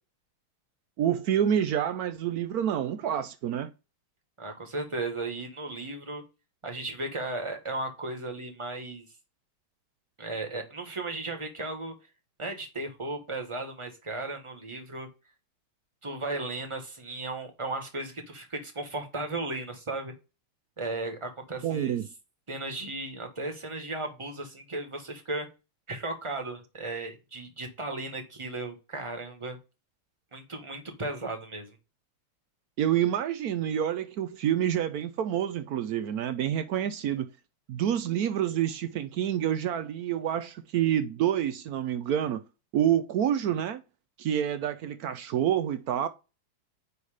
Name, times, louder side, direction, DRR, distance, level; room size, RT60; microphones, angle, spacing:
voice 1, 1.0-3.7 21.6-22.1 32.8-37.3 37.7-42.4 42.7-43.8 44.2-46.1, right 10 dB, 90° right, 0.8 m, -28 dB
voice 2, 4.4-6.2 6.6-9.1 10.2-11.9 12.4-15.1 16.0-20.1 20.8-22.0 22.5-25.5 25.9-29.6 30.3-31.8, right 2 dB, 15° right, 1.4 m, -35 dB
9.6 x 3.2 x 5.1 m
omnidirectional pair, 2.4 m